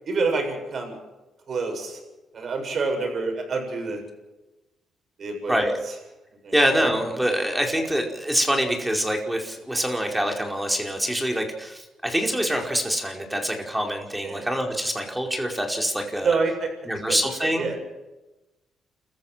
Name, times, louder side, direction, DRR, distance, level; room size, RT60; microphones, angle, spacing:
voice 1, 0.1-1.0 1.5-2.0 2.3-4.0 5.2-5.9 6.4-6.5 14.2-14.5 16.2-16.7 17.1-17.8, right 4 dB, 50° right, 4 dB, 7.6 m, -27 dB
voice 2, 6.5-16.3 16.9-17.7, equal, 5° right, 2 dB, 4.9 m, -25 dB
29.5 x 14.5 x 7.7 m, 1.0 s
cardioid pair, 90°, 0 cm